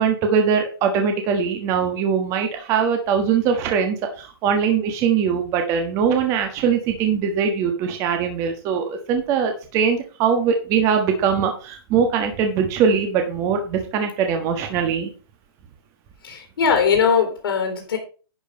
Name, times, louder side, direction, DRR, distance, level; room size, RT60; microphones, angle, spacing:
voice 1, 0.0-15.1, right 6 dB, 20° right, 5 dB, 1.4 m, -21 dB
voice 2, 16.2-18.0, left 6 dB, 70° left, 4 dB, 3.1 m, -20 dB
11.0 x 4.9 x 5.3 m, 0.36 s
hypercardioid pair, 160°, 13 cm